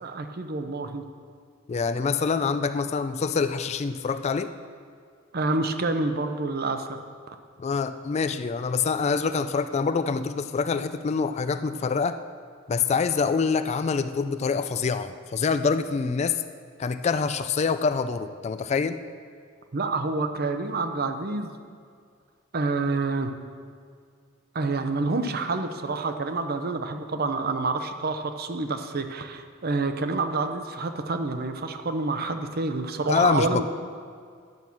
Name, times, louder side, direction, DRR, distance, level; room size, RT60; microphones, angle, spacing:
voice 1, 0.0-1.0 5.3-7.0 7.3-7.4 19.7-21.5 22.5-23.3 24.5-33.7, right 3 dB, 50° right, 8 dB, 0.7 m, -28 dB
voice 2, 1.7-4.5 7.6-12.2 12.7-16.4 16.8-19.0 33.1-33.6, left 5 dB, 30° left, 11 dB, 0.3 m, -25 dB
10.5 x 6.1 x 7.0 m, 2.1 s
head